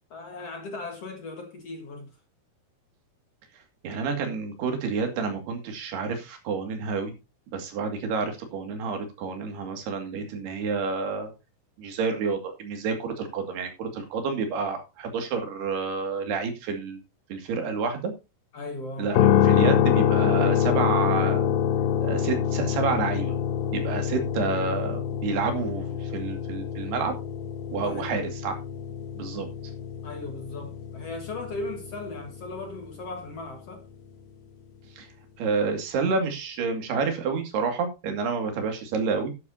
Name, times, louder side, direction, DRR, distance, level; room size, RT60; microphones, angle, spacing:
voice 1, 0.1-2.2 18.5-19.2 27.7-28.3 30.0-33.8, left 2 dB, 50° left, 2.1 m, -37 dB
voice 2, 3.8-7.1 7.5-11.3 11.8-17.0 17.3-18.1 19.0-21.5 22.0-23.4 23.7-27.1 27.7-28.6 29.2-29.5 35.0-35.1 35.4-39.3, right 5 dB, 85° right, 4.4 m, -29 dB
sound 1, 19.1-33.2, left 9 dB, 70° left, 1.9 m, -26 dB
12.0 x 11.5 x 2.8 m
omnidirectional pair, 4.5 m